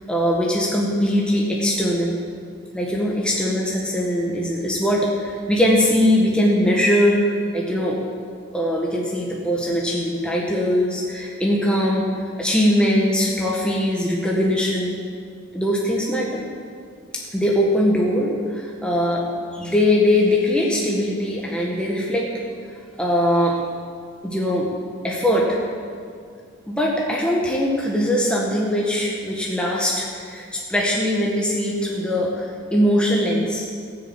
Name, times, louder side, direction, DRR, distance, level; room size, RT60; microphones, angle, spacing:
voice 1, 0.1-2.2 2.7-8.0 8.5-12.1 12.4-14.9 15.5-16.5 17.1-19.2 19.5-22.3 23.0-23.6 24.2-24.7 25.0-25.6 26.7-33.7, left 1 dB, 5° left, -3 dB, 1.5 m, -21 dB
17.5 x 7.0 x 8.2 m, 2.2 s
head